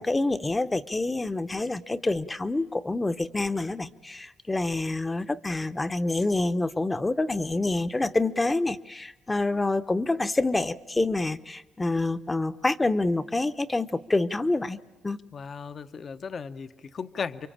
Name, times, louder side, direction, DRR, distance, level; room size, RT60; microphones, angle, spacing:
voice 1, 0.0-14.8 15.0-15.2, left 2 dB, 20° left, 11 dB, 0.9 m, -27 dB
voice 2, 15.3-17.5, left 5 dB, 45° left, 11 dB, 0.9 m, -36 dB
28.5 x 24.0 x 8.8 m, 1.1 s
cardioid pair, 90°, 0 cm